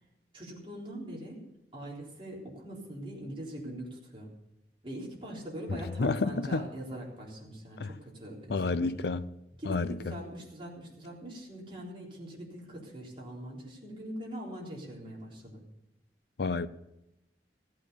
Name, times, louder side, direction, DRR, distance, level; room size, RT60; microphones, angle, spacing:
voice 1, 0.3-1.4 1.7-4.3 4.8-8.9 9.6-15.6, right 1 dB, 30° right, 4.0 m, -42 dB
voice 2, 6.0-6.6 7.8-7.9 8.5-9.2 9.7-9.9 16.4-16.7, left 3 dB, 65° left, 0.6 m, -29 dB
15.5 x 8.8 x 6.9 m
head